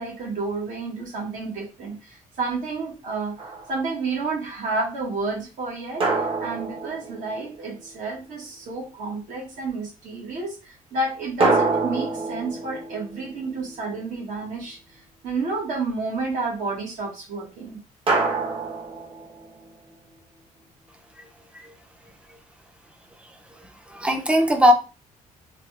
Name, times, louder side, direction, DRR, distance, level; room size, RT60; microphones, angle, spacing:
voice 1, 0.0-3.3 3.7-17.8, right 3 dB, 70° right, 1.8 m, -30 dB
sound 1, 3.4-4.0 6.0-7.8 11.4-14.0 18.1-19.7, right 3 dB, 40° right, 1.1 m, -26 dB
voice 2, 23.9-24.7, equal, 10° right, 0.6 m, -19 dB
3.8 x 2.4 x 3.1 m
cardioid pair, 110°, 14 cm